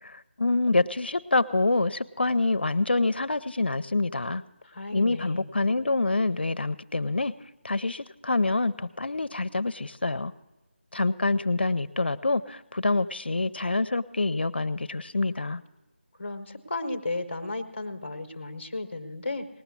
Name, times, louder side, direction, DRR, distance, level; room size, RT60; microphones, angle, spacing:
voice 1, 0.0-4.4 4.9-7.3 7.6-10.3 10.9-15.6, left 3 dB, 60° left, 13 dB, 0.5 m, -26 dB
voice 2, 4.6-5.5 16.2-19.5, left 2 dB, 15° left, 8 dB, 0.8 m, -34 dB
19.0 x 7.2 x 8.2 m, 1.1 s
figure-of-eight pair, 180°, 6 cm